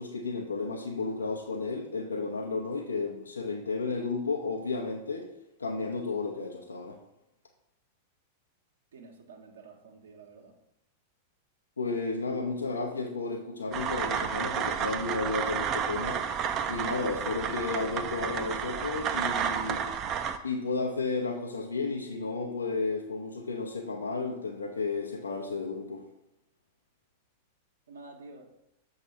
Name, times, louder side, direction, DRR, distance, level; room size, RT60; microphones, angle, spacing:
voice 1, 0.0-5.3 5.6-7.0 11.8-16.2 16.7-19.8 20.4-26.0, left 3 dB, 75° left, 0 dB, 0.7 m, -33 dB
voice 2, 8.9-10.5 27.9-28.5, right 3 dB, 65° right, 2 dB, 1.1 m, -49 dB
sound 1, 13.7-20.4, right 7 dB, 30° right, 0.5 m, -31 dB
6.8 x 2.9 x 5.6 m, 0.89 s
figure-of-eight pair, 95°, 0 cm